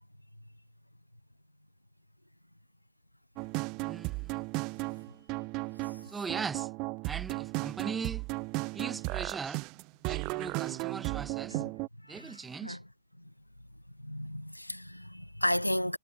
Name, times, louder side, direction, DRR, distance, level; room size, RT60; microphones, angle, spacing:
sound 1, 3.4-11.9, right 26 dB, 30° right, 2.4 m, -35 dB
voice 1, 3.8-4.4 6.0-6.7 7.0-8.3 8.7-9.6 10.1-11.6 12.1-12.8, right 5 dB, 10° right, 4.6 m, -39 dB
voice 2, 14.0-16.0, equal, 90° left, 1.4 m, -33 dB
figure-of-eight pair, 115°, 0 cm